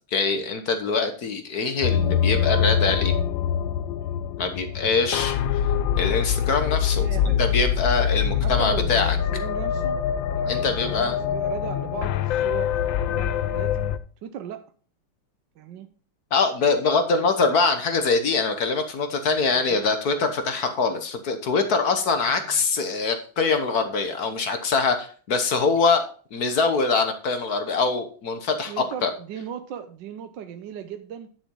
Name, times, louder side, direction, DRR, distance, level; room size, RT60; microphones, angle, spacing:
voice 1, 0.1-3.1 4.4-5.4 5.9-9.2 10.5-11.2 16.3-26.0 26.3-29.1, left 4 dB, 50° left, 8 dB, 1.5 m, -23 dB
sound 1, 1.8-14.0, left 8 dB, 70° left, 1.3 m, -24 dB
voice 2, 7.0-7.4 8.4-10.0 10.4-13.8 14.2-14.6 15.6-15.9 19.5-19.8 22.3-23.1 28.7-31.3, right 8 dB, 65° right, 8 dB, 1.3 m, -37 dB
10.5 x 7.2 x 3.8 m, 0.40 s
omnidirectional pair, 2.4 m